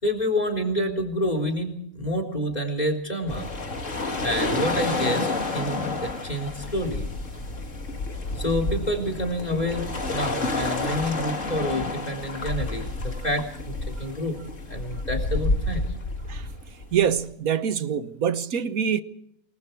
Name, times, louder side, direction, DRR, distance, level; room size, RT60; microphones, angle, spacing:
voice 1, 0.0-3.5 4.2-7.1 8.3-14.4 14.7-15.9, equal, 25° left, 4.0 m, -28 dB
sound 1, 3.3-17.2, left 2 dB, 55° left, 2.6 m, -30 dB
voice 2, 16.9-19.0, right 8 dB, 70° right, 1.5 m, -25 dB
28.0 x 21.0 x 4.7 m
omnidirectional pair, 1.6 m